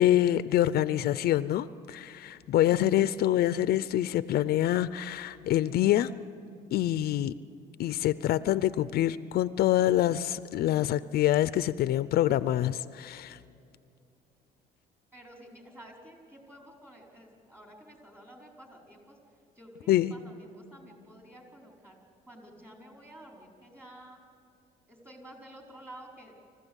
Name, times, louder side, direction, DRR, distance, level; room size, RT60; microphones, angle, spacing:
voice 1, 0.0-6.1 6.7-7.4 7.8-13.4 19.9-20.1, left 13 dB, 65° left, 15 dB, 0.5 m, -26 dB
voice 2, 15.1-19.2 19.6-22.0 22.3-24.2 24.9-26.3, right 1 dB, 15° right, 0 dB, 4.8 m, -51 dB
26.0 x 15.0 x 8.2 m, 2.6 s
cardioid pair, 110°, 17 cm